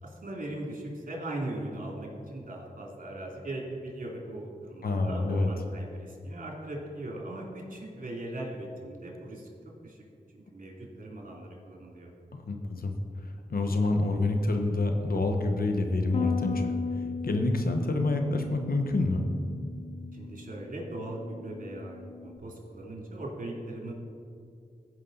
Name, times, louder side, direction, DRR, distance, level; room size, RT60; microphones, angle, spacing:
voice 1, 0.0-9.5 9.8-10.0 10.3-12.1 20.1-23.9, right 1 dB, 60° right, -2 dB, 2.6 m, -39 dB
voice 2, 4.8-5.5 12.3-12.9 13.5-16.7 17.2-19.2, left 2 dB, 70° left, 5 dB, 1.0 m, -27 dB
Bass guitar, 16.1-22.4, left 5 dB, 40° left, 0.4 m, -37 dB
15.5 x 5.4 x 3.9 m, 2.4 s
cardioid pair, 50°, 16 cm